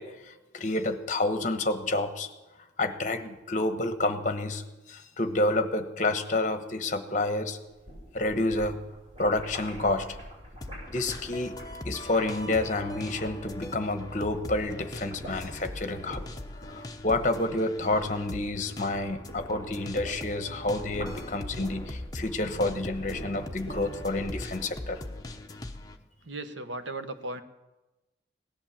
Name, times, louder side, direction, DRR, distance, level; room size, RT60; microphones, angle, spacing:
voice 1, 0.0-2.3 2.8-7.6 8.1-8.8 9.2-10.2 10.9-11.6 11.8-16.2 16.6-25.0, left 2 dB, 40° left, 8 dB, 1.1 m, -29 dB
sound 1, 7.6-13.9 14.2-20.2 20.5-25.3, equal, 35° right, 7.0 m, -44 dB
sound 2, 10.6-26.0, left 1 dB, 20° left, 0.8 m, -41 dB
voice 2, 26.2-27.4, right 2 dB, 80° right, 9 dB, 1.2 m, -36 dB
17.5 x 11.0 x 7.4 m, 1.1 s
head